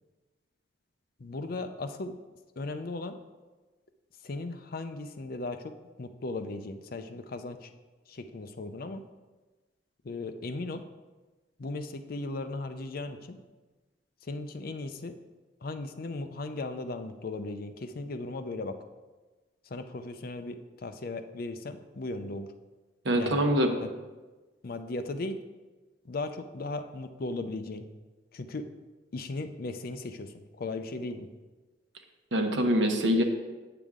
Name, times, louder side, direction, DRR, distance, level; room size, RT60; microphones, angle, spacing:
voice 1, 1.2-2.1 2.6-3.2 4.2-5.7 6.0-7.7 8.1-9.0 10.0-10.8 11.6-13.4 14.3-15.1 15.6-18.8 19.7-22.5 23.1-23.4 23.8-23.9 24.6-25.4 26.1-27.9 28.3-28.7 29.1-31.3, left 2 dB, 50° left, 9 dB, 0.5 m, -37 dB
voice 2, 23.0-23.7 32.3-33.2, equal, 70° right, 4 dB, 1.0 m, -24 dB
9.1 x 6.8 x 3.7 m, 1.2 s
head